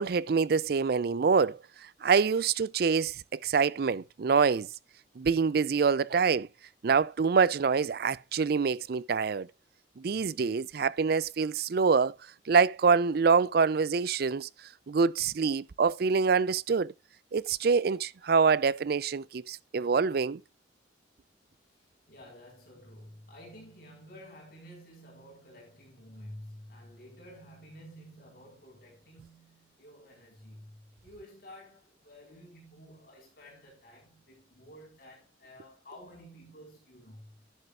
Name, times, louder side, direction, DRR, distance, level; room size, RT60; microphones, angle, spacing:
voice 1, 0.0-4.7 5.2-6.5 6.8-9.5 10.0-12.2 12.5-14.5 14.9-16.9 17.3-20.4, right 5 dB, 55° right, 0.4 m, -26 dB
voice 2, 22.1-37.4, equal, 55° left, 4.5 m, -51 dB
11.0 x 10.0 x 2.5 m
head